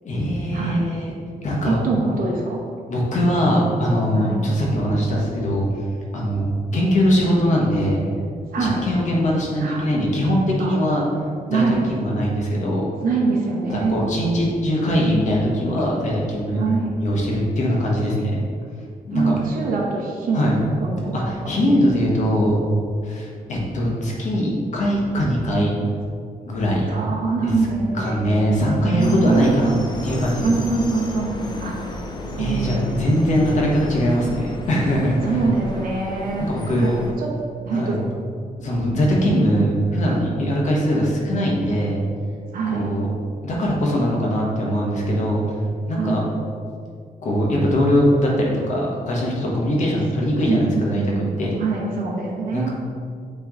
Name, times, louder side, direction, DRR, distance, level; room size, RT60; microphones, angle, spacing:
voice 1, 0.0-1.1 1.4-1.8 2.9-5.7 6.1-6.5 6.7-8.0 8.6-11.0 11.5-12.9 13.7-16.6 17.0-18.4 19.1-19.3 20.3-20.6 21.1-22.6 23.0-25.7 26.5-26.9 27.4-27.5 27.9-29.8 30.0-30.5 32.4-35.4 36.4-37.0 37.7-38.0 38.6-42.0 42.7-43.1 43.4-45.4 45.9-46.2 47.2-51.1 51.4-51.6 52.5-52.7, equal, 50° left, -2 dB, 1.3 m, -21 dB
voice 2, 1.6-2.6 4.1-4.4 8.5-8.8 9.6-9.9 10.6-10.7 11.5-11.8 13.0-14.0 16.5-16.9 19.1-20.5 20.8-21.2 26.9-29.8 30.4-31.7 32.3-33.5 35.2-36.5 36.8-37.3 37.7-37.9 42.5-42.9 46.0-46.2 50.5-52.7, right 4 dB, 70° right, -3 dB, 1.0 m, -24 dB
sound 1, 29.0-37.1, left 1 dB, 30° left, 0.6 m, -33 dB
8.8 x 3.5 x 3.7 m, 2.2 s
wide cardioid pair, 175°, 16 cm